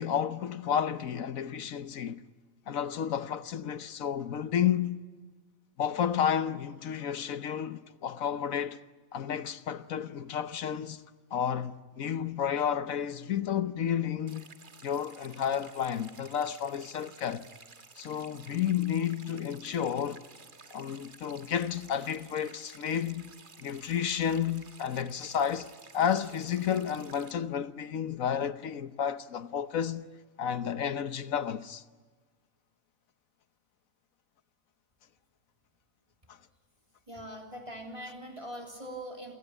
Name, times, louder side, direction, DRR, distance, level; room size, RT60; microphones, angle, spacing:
voice 1, 0.0-2.2 2.7-5.0 5.8-8.8 9.1-11.0 11.3-14.4 14.8-17.5 18.0-20.2 20.7-23.3 23.6-30.1 30.4-31.8, left 8 dB, 75° left, 1.4 m, -31 dB
sound 1, 14.3-27.3, right 4 dB, 40° right, 1.5 m, -53 dB
voice 2, 37.1-39.3, equal, 20° right, 3.4 m, -42 dB
28.5 x 17.5 x 9.9 m
omnidirectional pair, 1.4 m